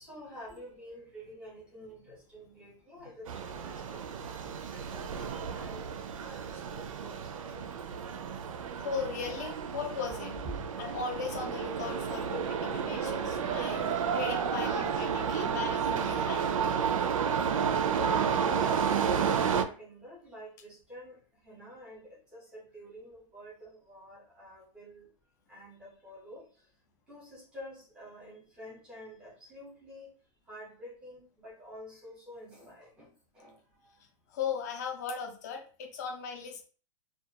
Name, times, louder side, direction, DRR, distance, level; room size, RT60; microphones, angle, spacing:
voice 1, 0.0-5.9 6.2-8.0 10.4-10.7 12.1-12.3 12.6-12.7 13.7-13.9 17.9-21.2 21.4-25.1 25.5-26.4 27.1-30.1 30.5-33.6, equal, 5° right, -5 dB, 0.7 m, -48 dB
sound 1, 3.3-19.6, right 7 dB, 80° right, 0.4 m, -31 dB
voice 2, 8.8-10.4 10.8-16.5 34.3-36.6, left 6 dB, 30° left, 3 dB, 0.5 m, -38 dB
2.4 x 2.2 x 2.7 m, 0.39 s
hypercardioid pair, 175°, 17 cm